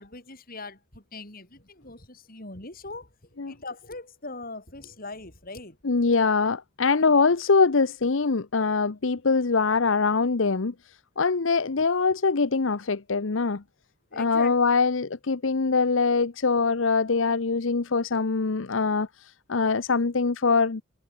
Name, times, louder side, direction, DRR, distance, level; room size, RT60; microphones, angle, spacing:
voice 1, 0.0-3.1 3.5-5.8 14.1-14.5, left 3 dB, 45° left, 7.3 m, -40 dB
voice 2, 5.8-10.7 11.2-13.6 14.1-20.8, left 4 dB, 75° left, 0.8 m, -23 dB
head